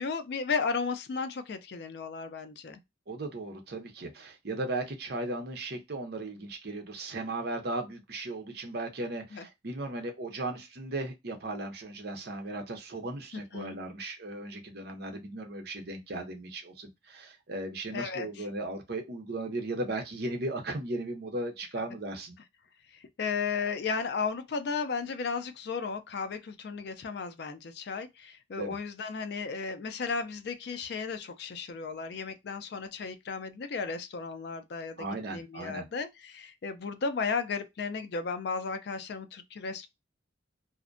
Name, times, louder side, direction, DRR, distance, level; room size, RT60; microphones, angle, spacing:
voice 1, 0.0-2.8 9.3-9.4 13.3-13.8 17.9-18.4 22.9-35.1 35.3-39.9, left 5 dB, 55° left, 0.3 m, -34 dB
voice 2, 3.1-22.3 28.6-28.8 35.0-35.9, right 2 dB, 55° right, 0.6 m, -36 dB
2.5 x 2.1 x 2.4 m
head